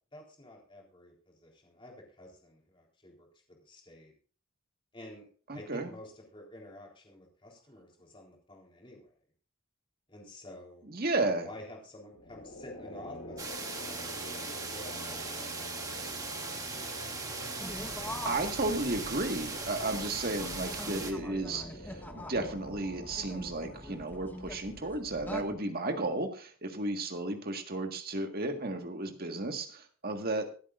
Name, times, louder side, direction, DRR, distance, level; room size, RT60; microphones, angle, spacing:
voice 1, 0.1-4.1 4.9-5.3 5.5-9.1 10.1-10.9 11.4-16.8 18.0-18.3, left 1 dB, 25° left, -1 dB, 3.8 m, -51 dB
voice 2, 5.5-5.9 10.9-11.5 18.3-30.5, right 2 dB, 45° right, 5 dB, 1.7 m, -33 dB
sound 1, 12.1-25.2, left 1 dB, 75° left, 3.9 m, -46 dB
sound 2, 13.4-21.1, right 4 dB, 15° right, 1.5 m, -39 dB
sound 3, 17.6-25.5, left 1 dB, 10° left, 1.1 m, -45 dB
25.5 x 8.5 x 2.6 m, 0.40 s
head